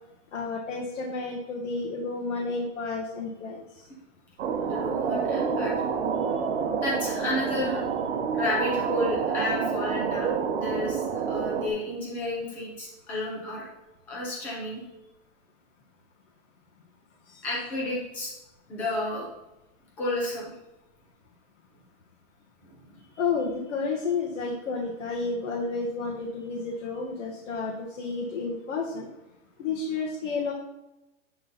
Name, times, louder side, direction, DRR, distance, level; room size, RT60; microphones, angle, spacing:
voice 1, 0.3-3.6 23.2-29.1 29.6-30.5, left 4 dB, 85° left, -2 dB, 1.7 m, -31 dB
sound 1, 4.4-11.7, right 6 dB, 60° right, 1.1 m, -28 dB
voice 2, 4.6-5.8 6.8-7.8 8.3-13.7 14.1-14.8 17.4-18.3 18.7-19.3 20.0-20.5 22.6-23.0, left 1 dB, 5° left, -4 dB, 0.4 m, -31 dB
10.5 x 3.8 x 4.2 m, 0.96 s
supercardioid pair, 175°, 37 cm